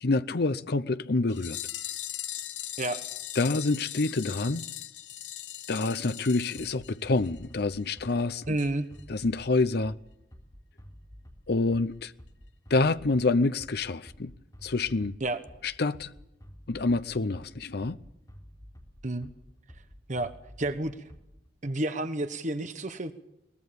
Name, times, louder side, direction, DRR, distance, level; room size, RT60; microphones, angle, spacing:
voice 1, 0.0-1.6 3.4-4.7 5.7-8.4 9.1-9.9 11.5-12.1 12.7-14.3 14.6-15.2 15.6-16.1 16.7-18.0, left 3 dB, 60° left, 0.7 m, -27 dB
sound 1, 1.3-7.5 7.7-7.8 8.1-8.2 8.6-8.7 9.0-9.1, left 12 dB, 85° left, 1.0 m, -39 dB
Bass drum, 6.6-21.5, equal, 20° left, 3.9 m, -51 dB
voice 2, 8.5-8.9 15.2-15.4 19.0-19.3 20.1-20.3 20.6-21.1 21.6-23.1, right 1 dB, 45° right, 1.2 m, -30 dB
22.5 x 19.5 x 7.0 m
head